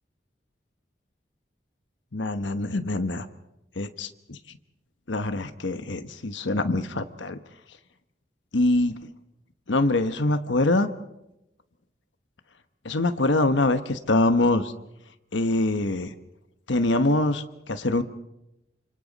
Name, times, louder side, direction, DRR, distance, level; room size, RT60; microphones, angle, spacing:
voice 1, 2.1-3.3 3.8-4.4 5.1-7.4 8.5-9.0 9.7-10.9 12.8-14.7 15.3-16.1 16.7-18.0, left 2 dB, 90° left, 10 dB, 1.2 m, -24 dB
29.5 x 26.5 x 4.1 m, 0.90 s
head